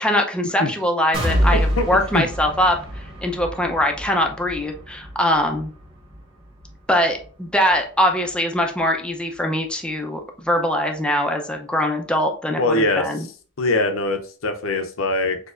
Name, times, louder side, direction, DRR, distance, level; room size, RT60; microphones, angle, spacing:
voice 1, 0.0-2.8 3.2-5.7 6.9-13.3, left 1 dB, 5° left, 3 dB, 0.6 m, -22 dB
sound 1, 1.1-8.9 9.3-9.4 9.9-10.0, equal, 30° right, 1.5 m, -28 dB
voice 2, 12.6-13.1 13.6-15.4, left 2 dB, 70° left, 6 dB, 0.7 m, -22 dB
6.3 x 2.9 x 2.5 m, 0.41 s
head